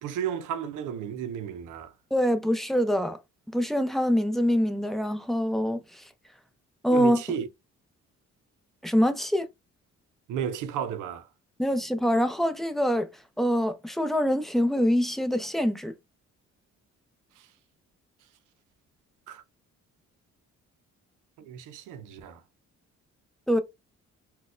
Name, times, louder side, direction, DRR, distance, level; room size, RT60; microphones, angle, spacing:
voice 1, 0.0-1.9 6.9-7.5 10.3-11.3 17.4-17.5 19.3-19.4 21.4-22.4, right 8 dB, 85° right, 0.5 m, -33 dB
voice 2, 2.1-3.2 3.5-5.8 6.8-7.2 8.8-9.5 11.6-13.1 13.4-15.9 23.5-23.6, equal, ahead, 0.5 m, -24 dB
4.0 x 2.2 x 2.4 m
cardioid pair, 90°, 30 cm